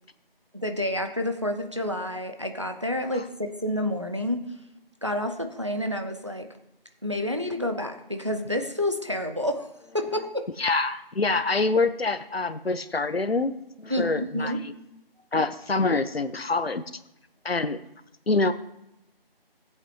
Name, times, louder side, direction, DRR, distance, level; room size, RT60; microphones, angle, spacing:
voice 1, 0.5-4.4 5.0-6.5 7.0-9.7 9.9-10.4 13.9-14.6, left 1 dB, 30° right, 6 dB, 0.7 m, -29 dB
voice 2, 10.6-13.5 13.8-14.5 15.3-16.8 17.4-17.8 18.3-18.5, left 3 dB, 80° left, 12 dB, 0.9 m, -25 dB
18.0 x 8.0 x 2.9 m, 0.87 s
figure-of-eight pair, 170°, 30 cm